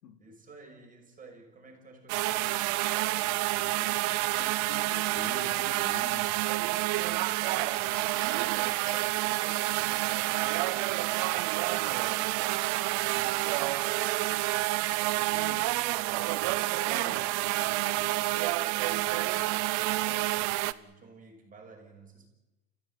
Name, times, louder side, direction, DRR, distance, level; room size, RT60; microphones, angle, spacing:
voice 1, 0.2-4.1 6.1-12.6 12.9-17.4 17.6-18.2 18.6-22.3, right 4 dB, 15° right, 2 dB, 6.2 m, -53 dB
sound 1, 2.1-20.7, right 20 dB, 35° right, 0.8 m, -29 dB
sound 2, 2.3-3.6 3.9-9.5 9.9-11.1 11.7-12.4 13.0-13.9 14.5-15.6, left 2 dB, 20° left, 4.5 m, -54 dB
voice 2, 4.4-6.3 15.3-15.7 16.9-17.3, left 9 dB, 75° left, 7 dB, 3.2 m, -45 dB
29.5 x 15.5 x 9.3 m, 1.1 s
hypercardioid pair, 125°, 49 cm